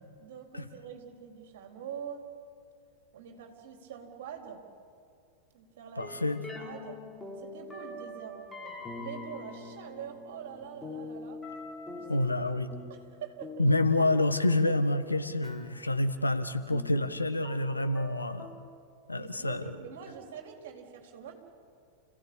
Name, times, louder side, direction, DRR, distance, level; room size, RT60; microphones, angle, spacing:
voice 1, 0.2-2.2 3.1-4.6 5.5-7.0 7.4-11.4 12.0-12.3 12.9-13.7 19.1-21.3, right 8 dB, 55° right, 2 dB, 4.0 m, -45 dB
voice 2, 6.0-6.4 12.1-12.7 13.6-18.5 19.1-19.8, left 2 dB, 85° left, 9 dB, 1.3 m, -28 dB
sound 1, 6.0-18.7, left 2 dB, 10° left, 3.6 m, -45 dB
29.5 x 16.5 x 8.7 m, 2.3 s
figure-of-eight pair, 90°, 0 cm